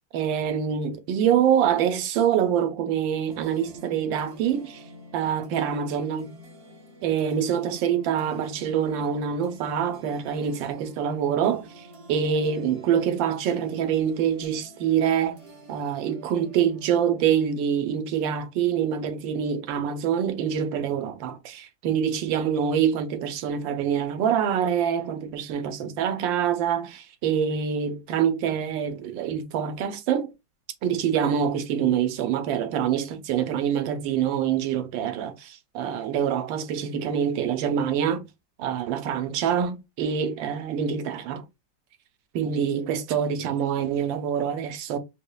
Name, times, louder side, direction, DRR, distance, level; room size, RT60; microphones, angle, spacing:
voice 1, 0.1-4.8 5.1-6.4 7.0-15.4 15.7-30.3 30.8-38.3 38.6-41.5 42.3-45.0, right 8 dB, 90° right, 1.3 m, -25 dB
sound 1, 3.3-19.9, equal, 45° right, 0.8 m, -49 dB
5.1 x 2.2 x 2.2 m
omnidirectional pair, 2.0 m